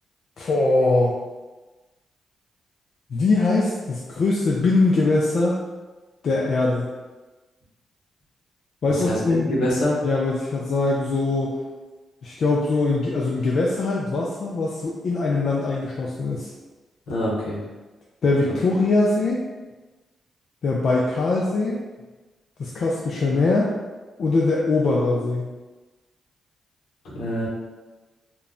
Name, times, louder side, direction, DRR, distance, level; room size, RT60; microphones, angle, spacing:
voice 1, 0.4-1.1 3.1-5.6 6.2-6.9 8.8-9.5 10.0-11.6 12.2-16.5 18.2-19.4 20.6-21.8 22.6-23.7 24.2-25.5, left 3 dB, 65° left, -4 dB, 0.4 m, -22 dB
voice 2, 8.9-10.0 17.1-17.6 27.0-27.5, equal, 85° left, -5 dB, 0.8 m, -25 dB
2.3 x 2.0 x 3.6 m, 1.2 s
cardioid pair, 65°, 0 cm